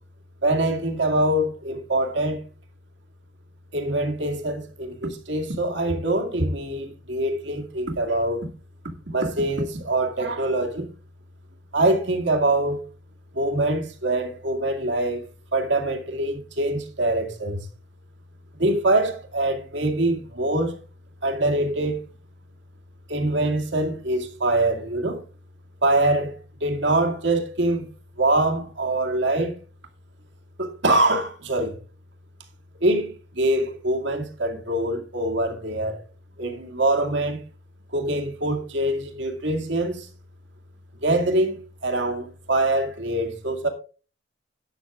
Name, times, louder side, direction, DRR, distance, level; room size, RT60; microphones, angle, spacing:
voice 1, 0.4-2.4 3.7-8.5 9.1-10.9 11.7-12.8 13.3-15.3 15.5-17.6 18.6-20.8 21.2-22.0 23.1-25.2 25.8-27.9 28.2-29.6 30.6-31.8 32.8-36.0 36.4-37.4 37.9-40.1 41.0-43.7, right 1 dB, 60° right, 2.2 m, -24 dB
12.0 x 9.3 x 3.6 m
head